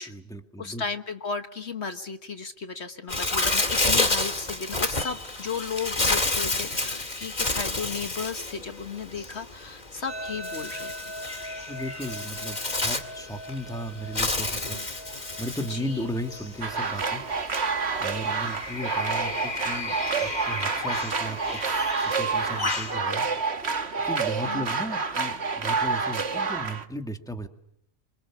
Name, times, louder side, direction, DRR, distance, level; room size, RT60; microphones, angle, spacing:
voice 1, 0.0-0.8 11.7-14.8 15.4-17.2 18.0-23.2 24.0-27.5, equal, 5° left, 5 dB, 2.0 m, -36 dB
voice 2, 0.6-10.9 15.7-16.1 24.4-24.6, left 5 dB, 60° left, 8 dB, 1.5 m, -34 dB
Bird, 3.1-23.0, left 2 dB, 35° left, 2.2 m, -30 dB
sound 1, 10.1-19.1, equal, 90° right, 3.0 m, -42 dB
sound 2, 16.6-26.9, right 4 dB, 55° right, 1.7 m, -28 dB
26.5 x 25.5 x 7.3 m, 0.76 s
omnidirectional pair, 1.3 m